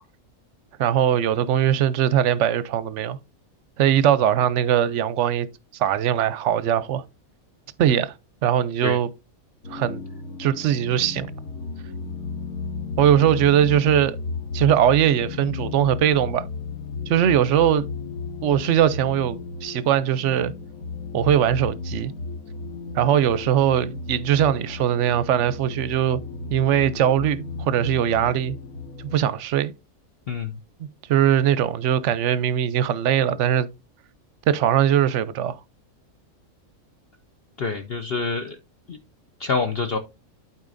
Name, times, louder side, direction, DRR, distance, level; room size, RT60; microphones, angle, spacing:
voice 1, 0.8-3.2 3.8-5.5 5.8-7.0 7.8-8.1 8.4-9.1 9.7-10.0 10.4-11.3 13.0-14.2 14.5-16.4 17.1-17.9 18.4-20.5 21.1-22.1 23.0-26.2 26.5-28.5 29.1-29.7 31.1-33.7 34.5-35.6, right 10 dB, 65° right, 0.8 m, -20 dB
sound 1, 9.6-29.2, left 4 dB, 75° left, 1.7 m, -34 dB
voice 2, 37.6-38.6 38.9-39.0 39.4-40.0, left 4 dB, 50° left, 0.8 m, -26 dB
12.0 x 4.5 x 2.5 m
omnidirectional pair, 1.5 m